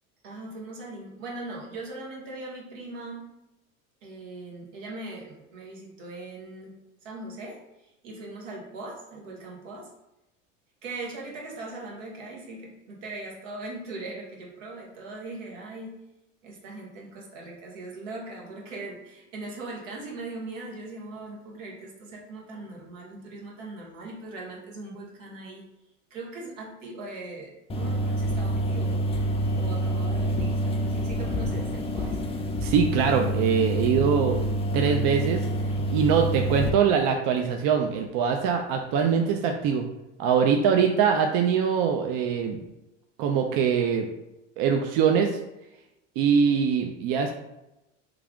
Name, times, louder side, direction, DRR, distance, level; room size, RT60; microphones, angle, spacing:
voice 1, 0.2-3.3 4.0-9.9 10.8-16.0 16.4-25.6 26.1-29.0 29.5-32.2, right 2 dB, 85° right, -2 dB, 1.2 m, -40 dB
sound 1, 27.7-36.7, right 1 dB, 15° left, 0.4 m, -27 dB
voice 2, 32.6-34.4 34.7-35.4 35.9-39.9 40.2-42.6 43.2-44.1 44.6-45.4 46.2-47.3, right 7 dB, 55° right, 3 dB, 0.5 m, -23 dB
3.2 x 2.4 x 3.6 m, 0.93 s
hypercardioid pair, 95°, 37 cm